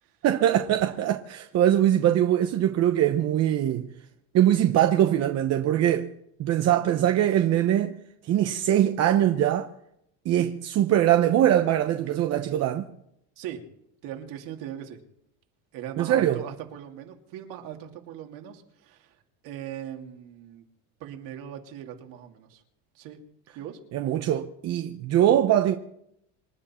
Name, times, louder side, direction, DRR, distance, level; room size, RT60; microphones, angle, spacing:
voice 1, 0.2-3.9 4.3-6.1 6.4-9.7 10.2-12.9 16.0-16.4 23.9-25.7, right 11 dB, 45° right, 1.0 m, -22 dB
voice 2, 14.0-15.0 15.7-19.2 19.4-20.6 21.0-22.6 22.9-23.2 23.5-23.8, right 10 dB, 65° right, 2.7 m, -39 dB
27.0 x 11.0 x 4.4 m
cardioid pair, 140°, 37 cm